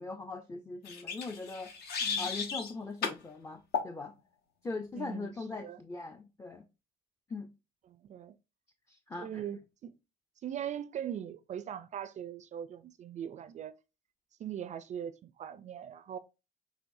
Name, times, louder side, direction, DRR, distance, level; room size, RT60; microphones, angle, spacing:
voice 1, 0.0-4.1 4.6-6.7 7.3-7.5 8.9-9.5, left 3 dB, 15° left, 0.4 m, -41 dB
sound 1, 0.8-2.7 3.0-3.2 3.7-3.9, left 5 dB, 70° left, 1.1 m, -34 dB
voice 2, 5.0-5.3 5.6-5.8 7.9-8.4 9.2-9.9 10.4-13.8 14.4-16.2, right 9 dB, 45° right, 0.4 m, -40 dB
6.2 x 3.1 x 2.6 m
cardioid pair, 110°, 17 cm